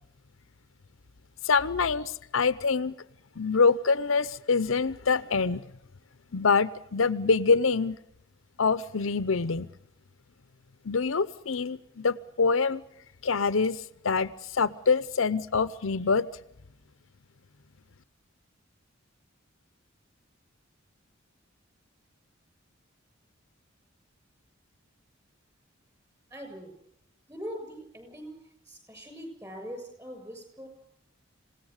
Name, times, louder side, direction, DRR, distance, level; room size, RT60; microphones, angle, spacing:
voice 1, 1.4-2.9 3.4-5.6 6.3-8.0 8.6-9.7 10.8-12.8 13.2-16.3, left 4 dB, 85° left, 15 dB, 0.8 m, -25 dB
voice 2, 26.3-26.7 27.3-28.4 28.7-30.7, equal, 15° right, 6 dB, 7.2 m, -41 dB
27.5 x 17.5 x 6.6 m, 0.76 s
head